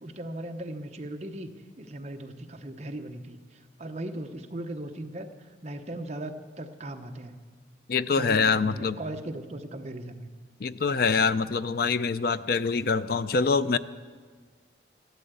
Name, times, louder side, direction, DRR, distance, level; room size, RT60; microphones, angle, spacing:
voice 1, 0.0-3.4 3.8-7.4 8.1-10.3, right 1 dB, 35° right, 6 dB, 0.9 m, -38 dB
voice 2, 7.9-9.0 10.6-13.8, left 5 dB, 50° left, 13 dB, 0.5 m, -25 dB
14.0 x 12.5 x 8.1 m, 1.5 s
head